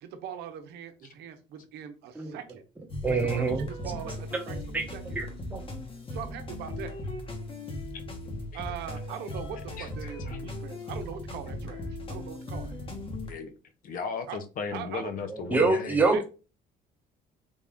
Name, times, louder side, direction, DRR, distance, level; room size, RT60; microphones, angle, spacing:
voice 1, 0.0-2.6 3.1-4.6 4.9-5.2 6.1-6.9 8.5-12.8 14.3-14.4 14.7-15.1 16.1-16.2, right 8 dB, 80° right, 6 dB, 0.7 m, -41 dB
sound 1, 2.9-13.3, left 1 dB, 30° left, 1.0 m, -38 dB
voice 2, 3.0-5.8 15.3-16.2, right 3 dB, 10° right, 2 dB, 1.0 m, -28 dB
voice 3, 9.8-10.4 13.2-13.5 13.8-16.0, left 5 dB, 55° left, 8 dB, 0.6 m, -36 dB
3.5 x 2.5 x 3.5 m, 0.32 s
cardioid pair, 110°, 17 cm